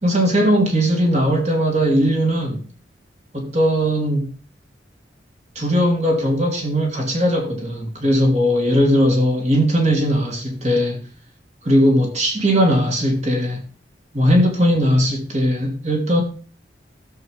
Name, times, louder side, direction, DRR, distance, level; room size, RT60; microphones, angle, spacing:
voice 1, 0.0-2.6 3.3-4.3 5.5-11.1 11.6-13.7 14.1-16.2, equal, 40° right, 3.1 m, -18 dB
16.0 x 7.5 x 3.4 m
head